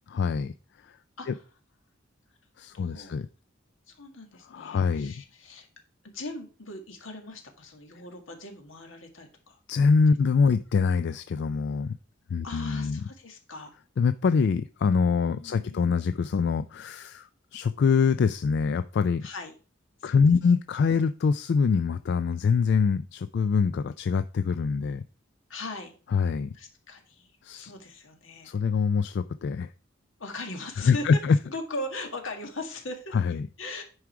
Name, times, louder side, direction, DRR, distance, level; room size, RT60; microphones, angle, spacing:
voice 1, 0.1-0.5 0.8-1.0 1.3-1.4 2.6-3.3 4.5-5.1 9.7-12.0 12.3-13.0 14.0-19.3 20.0-25.0 26.1-26.5 27.4-27.7 28.4-29.7 30.9-31.4 33.1-33.5, left 5 dB, 60° left, 12 dB, 0.3 m, -24 dB
voice 2, 2.7-3.2 3.9-5.7 6.1-9.6 12.4-13.8 15.3-15.9 19.2-19.5 20.0-20.2 25.5-25.9 26.5-28.5 30.2-33.2 33.6-33.8, left 2 dB, 80° left, 4 dB, 1.8 m, -39 dB
9.7 x 4.8 x 4.6 m, 0.37 s
head